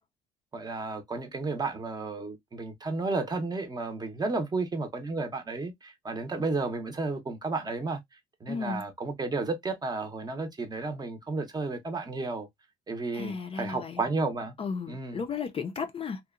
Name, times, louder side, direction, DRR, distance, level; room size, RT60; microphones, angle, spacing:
voice 1, 0.5-12.5 12.9-14.5 14.9-15.2, right 3 dB, 25° right, 0.7 m, -32 dB
voice 2, 8.5-8.8 13.1-14.0 14.6-16.2, left 5 dB, 35° left, 0.5 m, -34 dB
2.8 x 2.1 x 2.3 m
cardioid pair, 110°, 17 cm